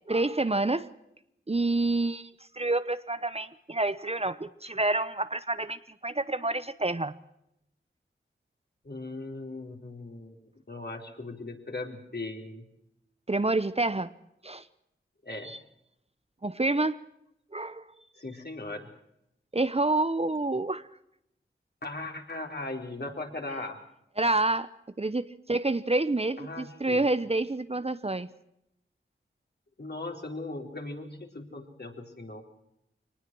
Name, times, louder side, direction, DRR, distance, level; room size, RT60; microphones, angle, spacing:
voice 1, 0.1-0.9 1.5-7.2 13.3-14.1 14.4-14.6 15.4-15.6 16.4-17.0 17.5-17.8 19.5-20.8 24.2-24.7 25.0-28.3, right 2 dB, 30° right, 13 dB, 0.9 m, -28 dB
voice 2, 8.8-10.4 10.7-12.7 15.2-15.6 18.2-18.9 21.8-23.8 26.4-27.1 29.8-32.4, left 2 dB, 55° left, 2 dB, 4.4 m, -38 dB
23.5 x 19.5 x 6.2 m, 0.79 s
cardioid pair, 45°, 20 cm